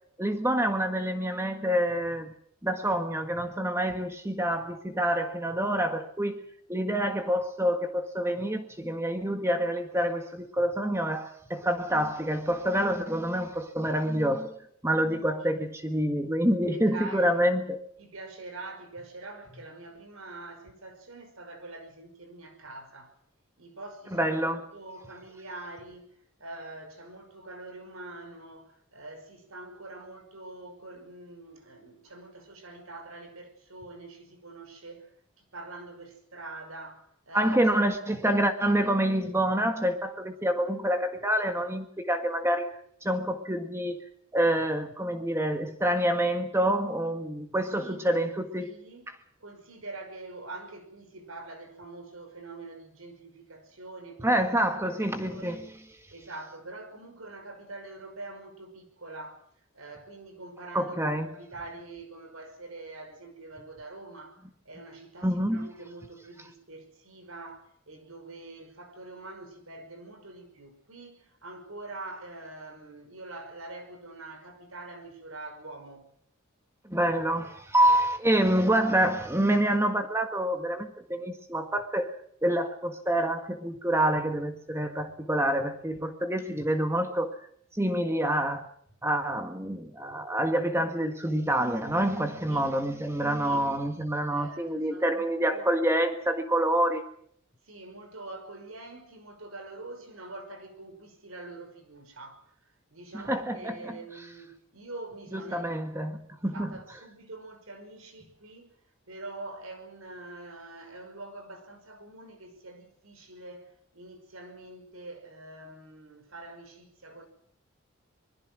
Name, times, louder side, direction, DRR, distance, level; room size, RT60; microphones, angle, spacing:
voice 1, 0.2-2.3 2.6-6.4 6.7-14.5 14.8-17.8 24.1-24.6 37.3-44.0 44.3-48.7 54.2-55.6 60.7-61.3 65.2-65.7 76.8-82.1 82.4-87.4 87.7-88.7 89.0-97.0 103.1-104.0 105.3-106.7, right 1 dB, 15° right, 1.7 m, -27 dB
voice 2, 16.7-17.4 18.0-23.1 23.6-26.1 26.4-35.1 35.4-37.6 47.8-48.3 48.6-54.4 54.8-55.7 56.1-59.5 59.7-76.1 92.5-92.7 93.4-93.7 94.3-95.8 97.6-108.7 109.1-117.3, right 2 dB, 85° right, 5.5 m, -45 dB
25.5 x 21.0 x 6.2 m
head